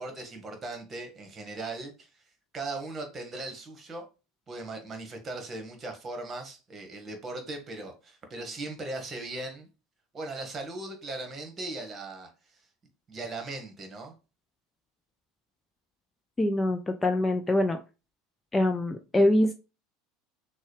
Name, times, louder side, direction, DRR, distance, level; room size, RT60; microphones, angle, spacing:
voice 1, 0.0-2.1 2.5-4.0 4.5-9.7 10.1-12.3 13.1-14.1, right 2 dB, 30° right, 1.5 m, -38 dB
voice 2, 16.4-17.8 18.5-19.5, left 1 dB, 15° left, 0.5 m, -24 dB
6.3 x 2.3 x 3.2 m
figure-of-eight pair, 75°, 0 cm